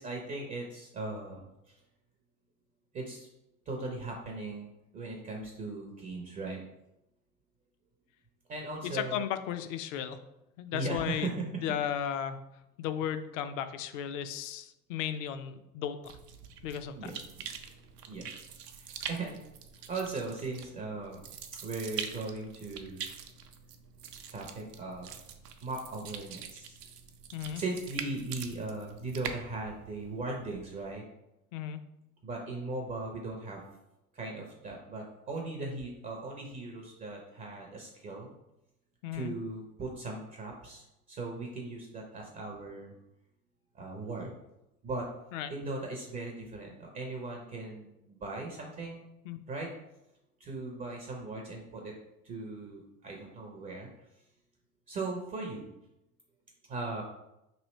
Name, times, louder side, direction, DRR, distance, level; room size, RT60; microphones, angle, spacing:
voice 1, 0.0-1.8 2.9-3.3 3.7-4.7 4.9-6.6 8.5-9.2 10.7-11.6 16.9-17.2 18.1-18.3 18.7-19.4 19.9-21.2 21.6-23.0 24.3-25.2 25.6-26.8 27.5-31.0 32.2-33.6 34.1-38.3 39.1-42.9 43.7-44.3 44.8-45.1 45.5-49.0 49.5-49.7 50.4-51.9 52.2-53.9 54.9-55.7 56.7-57.0, right 3 dB, 20° right, 0 dB, 0.4 m, -38 dB
voice 2, 8.9-10.2 10.6-12.4 12.8-16.2 16.6-17.1 27.3-27.6 31.5-31.8 39.0-39.3 45.3-45.5 49.2-49.4, left 9 dB, 55° left, 10 dB, 0.5 m, -35 dB
sound 1, 16.0-30.9, right 7 dB, 90° right, 0.5 m, -44 dB
3.1 x 2.7 x 4.0 m, 0.89 s
hypercardioid pair, 90°, 46 cm